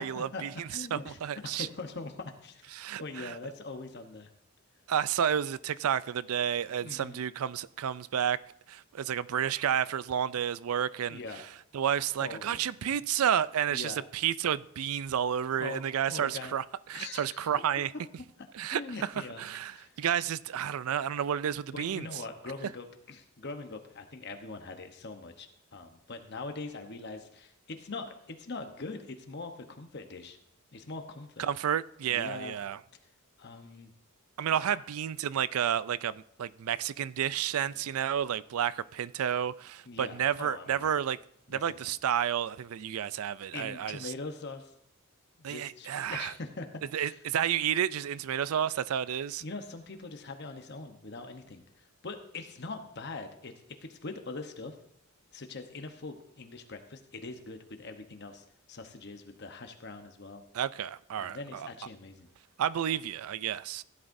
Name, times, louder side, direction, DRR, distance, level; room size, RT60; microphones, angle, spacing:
voice 1, 0.0-1.7 2.7-3.3 4.9-8.4 8.7-11.2 11.7-16.6 16.9-17.9 18.5-19.1 19.4-22.1 31.4-32.8 34.4-41.2 41.5-44.1 45.4-46.3 46.9-49.4 60.5-61.7 62.6-63.8, right 9 dB, 75° right, 0.4 m, -31 dB
voice 2, 0.7-4.3 6.8-7.2 11.1-11.4 12.2-13.0 13.7-14.0 15.6-15.8 16.1-16.5 16.9-17.5 18.6-19.5 19.7-20.0 21.7-30.4 30.7-31.4 32.1-32.6 33.4-33.9 34.7-34.8 39.9-40.9 41.5-41.8 43.5-44.7 45.4-47.2 49.4-53.5 53.8-54.8 55.3-60.4 61.2-62.3, left 3 dB, 50° left, 0.9 m, -42 dB
16.5 x 11.0 x 2.6 m
head